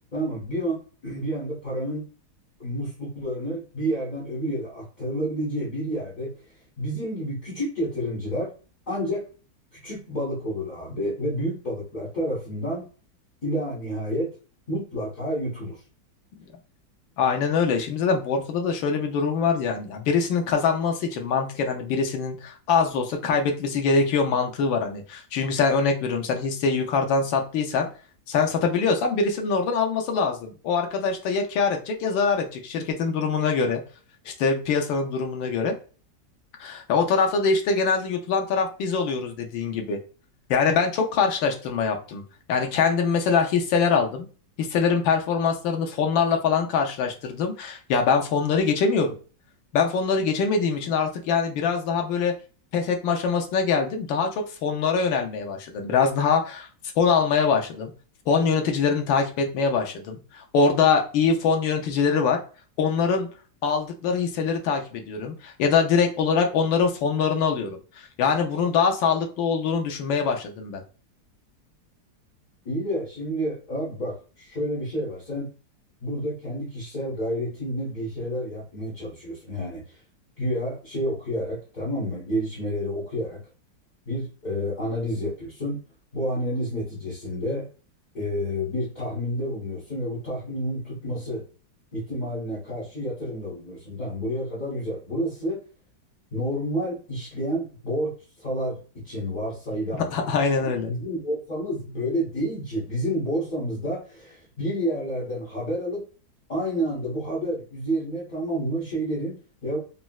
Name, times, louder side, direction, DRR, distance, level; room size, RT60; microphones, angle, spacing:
voice 1, 0.1-2.1 2.6-6.3 6.8-8.5 8.9-9.3 9.7-12.9 13.4-14.3 14.7-15.8 72.6-75.5 76.0-79.8 80.4-83.4 84.1-85.8 86.1-87.7 88.1-91.4 91.9-95.6 96.3-98.1 98.4-100.1 100.6-106.1 106.5-109.8, equal, 35° left, -8 dB, 0.7 m, -29 dB
voice 2, 17.2-27.9 28.3-33.8 34.3-35.7 36.6-40.0 40.5-42.2 42.5-44.3 44.6-49.1 49.7-52.3 52.7-56.7 57.0-57.9 58.3-62.4 62.8-63.3 63.6-70.8 99.9-100.9, left 5 dB, 90° left, 3 dB, 1.4 m, -23 dB
4.1 x 2.0 x 2.3 m, 0.38 s
omnidirectional pair, 2.0 m